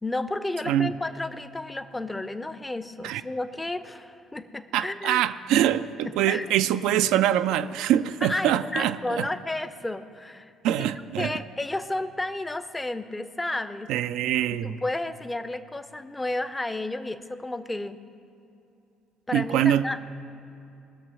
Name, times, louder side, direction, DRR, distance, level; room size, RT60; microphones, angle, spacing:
voice 1, 0.0-5.2 6.0-6.6 8.2-10.5 11.2-13.9 14.5-18.0 19.3-20.1, left 2 dB, 15° left, 0.7 m, -32 dB
voice 2, 4.7-9.3 10.6-11.3 13.9-14.8 19.3-19.8, right 11 dB, 65° right, 0.4 m, -24 dB
20.0 x 6.8 x 5.6 m
figure-of-eight pair, 50°, 0 cm